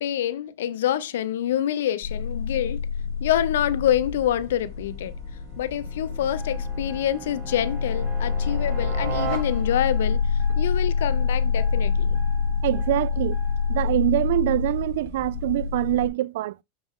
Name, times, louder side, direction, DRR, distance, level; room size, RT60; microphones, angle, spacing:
voice 1, 0.0-2.9 3.2-5.1 5.6-12.2, left 11 dB, 80° left, 0.8 m, -26 dB
sound 1, 2.0-16.1, left 5 dB, 40° left, 3.0 m, -27 dB
sound 2, 3.7-10.1, right 7 dB, 35° right, 4.3 m, -39 dB
sound 3, 6.3-13.9, equal, 5° left, 1.6 m, -47 dB
voice 2, 12.6-13.4 13.7-16.6, right 16 dB, 75° right, 0.4 m, -24 dB
7.0 x 6.5 x 3.7 m
supercardioid pair, 125°, 0 cm